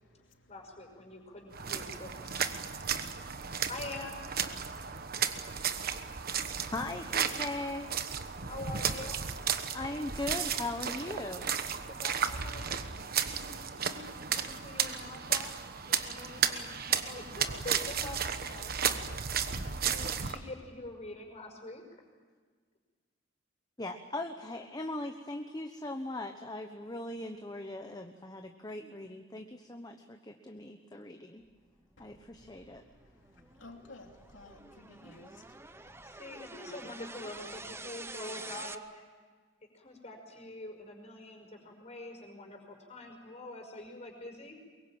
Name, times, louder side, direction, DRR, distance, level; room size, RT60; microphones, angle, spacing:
voice 1, 0.5-2.5 3.7-4.2 8.5-9.2 11.9-12.8 13.1-15.5 15.9-19.1 19.6-22.0 36.0-39.0 39.6-44.6, left 2 dB, 35° left, 5.4 m, -45 dB
sound 1, 1.5-20.4, right 7 dB, 50° right, 1.2 m, -34 dB
voice 2, 6.7-7.9 9.7-11.5 23.8-31.4 32.0-32.8, left 2 dB, 20° left, 1.1 m, -39 dB
sound 2, 31.8-38.7, right 3 dB, 15° right, 0.8 m, -48 dB
voice 3, 33.3-36.0, left 2 dB, 80° left, 3.0 m, -55 dB
23.0 x 22.5 x 8.9 m
head